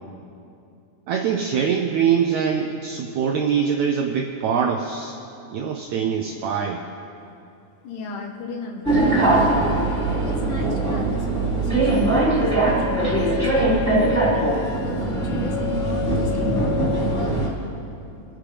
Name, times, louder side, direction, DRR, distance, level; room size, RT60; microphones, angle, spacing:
voice 1, 1.1-5.2 5.5-6.8, right 7 dB, 80° right, 2 dB, 1.7 m, -23 dB
voice 2, 7.8-9.4 9.8-9.9 10.2-13.8 14.1-17.9, left 4 dB, 70° left, 1 dB, 2.5 m, -36 dB
sound 1, 8.8-17.5, right 2 dB, 5° right, 2.9 m, -21 dB
sound 2, 12.6-17.5, left 27 dB, 85° left, 1.7 m, -30 dB
28.5 x 9.8 x 3.4 m, 2.6 s
omnidirectional pair, 4.1 m